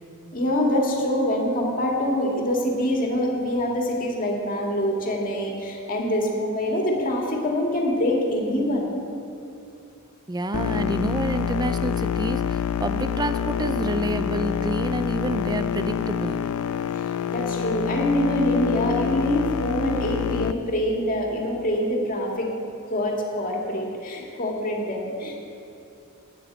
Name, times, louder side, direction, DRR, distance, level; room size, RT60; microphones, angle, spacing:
voice 1, 0.3-8.9 16.9-17.0 17.3-22.5 22.9-25.3, left 1 dB, 40° left, -1 dB, 1.9 m, -25 dB
voice 2, 10.3-16.4, right 2 dB, 20° right, 10 dB, 0.5 m, -28 dB
sound 1, 10.5-20.5, left 8 dB, 90° left, 0.4 m, -27 dB
9.1 x 8.0 x 7.9 m, 2.7 s
head